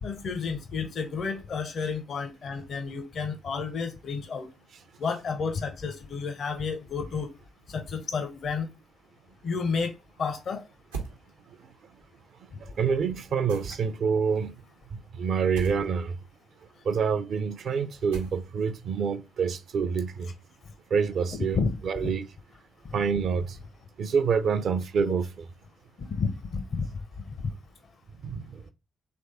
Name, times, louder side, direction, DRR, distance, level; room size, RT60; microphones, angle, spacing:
voice 1, 0.0-4.5 5.0-7.3 7.7-8.7 9.4-10.6 21.3-21.7 22.0-22.1 26.0-26.9 27.4-27.5, left 5 dB, 55° left, 0.6 m, -31 dB
sound 1, 10.9-11.2 13.5-14.0 15.6-15.8 18.1-18.7, right 5 dB, 90° right, 0.7 m, -37 dB
voice 2, 12.8-14.5 14.9-16.1 16.9-20.3 20.9-22.3 22.9-23.4 24.0-25.5 28.2-28.4, right 6 dB, 60° right, 0.5 m, -27 dB
3.5 x 3.2 x 4.1 m
hypercardioid pair, 40°, 0 cm